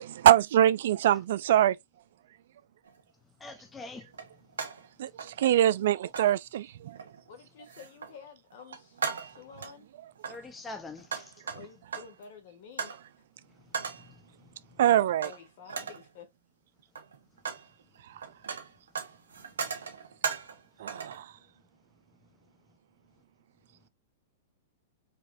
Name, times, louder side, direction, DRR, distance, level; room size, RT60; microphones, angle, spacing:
voice 1, 0.0-1.8 5.0-7.1 11.5-11.6 14.8-15.3 18.0-18.3 20.8-21.4, right 12 dB, 70° right, 0.3 m, -24 dB
sound 1, 2.9-3.0 4.1-4.9 5.2-5.8 6.1-6.3 7.0-7.3 7.7-8.2 8.5-9.8 10.2-12.2 12.8-13.1 13.7-14.1 15.2-15.4 15.7-16.1 16.8-17.7 18.0-20.6 20.9-21.2, right 6 dB, 85° right, 0.9 m, -37 dB
voice 2, 3.2-4.1 4.4-4.5 10.3-11.5 13.5-14.8 19.6-19.9 22.7-22.8, left 3 dB, 15° left, 0.6 m, -46 dB
voice 3, 7.3-9.9 11.5-13.0 13.5-13.6 14.9-16.3 21.4-21.5, left 6 dB, 60° left, 1.8 m, -50 dB
4.3 x 2.9 x 2.4 m
hypercardioid pair, 120°, 0 cm